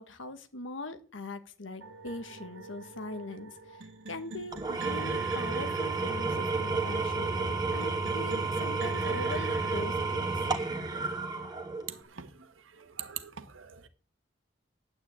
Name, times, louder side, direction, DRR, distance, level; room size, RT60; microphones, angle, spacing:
voice 1, 0.0-10.7, left 2 dB, 75° left, 1.5 m, -41 dB
sound 1, 1.8-9.8, right 4 dB, 65° right, 1.6 m, -46 dB
Engine / Tools, 4.5-12.0, right 3 dB, 20° right, 1.6 m, -31 dB
voice 2, 12.8-13.9, right 9 dB, 85° right, 1.4 m, -42 dB
9.1 x 8.7 x 8.5 m
head